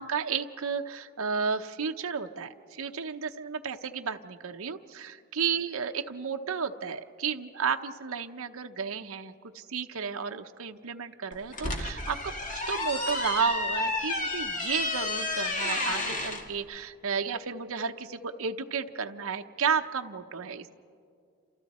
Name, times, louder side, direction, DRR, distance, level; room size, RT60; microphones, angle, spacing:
voice 1, 0.0-12.3 12.7-20.7, right 6 dB, 70° right, 5 dB, 0.8 m, -32 dB
sound 1, 11.3-16.4, left 2 dB, 35° left, 1.8 m, -31 dB
29.0 x 27.5 x 4.2 m, 2.4 s
head